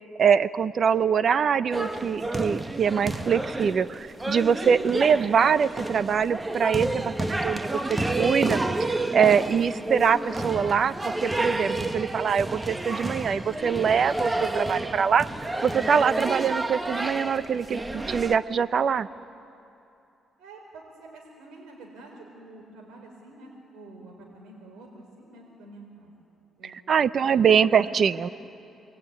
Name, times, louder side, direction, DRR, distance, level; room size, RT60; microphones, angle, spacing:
voice 1, 0.2-7.6 7.9-8.6 8.9-15.3 15.6-19.1 26.6-28.3, right 7 dB, 55° right, 15 dB, 0.7 m, -23 dB
sound 1, 1.7-18.4, right 2 dB, 15° right, 1.2 m, -30 dB
voice 2, 20.4-26.1 26.6-26.8 27.2-28.0, right 2 dB, 85° right, -1 dB, 4.3 m, -47 dB
27.5 x 21.0 x 9.6 m, 2.8 s
cardioid pair, 90°, 0 cm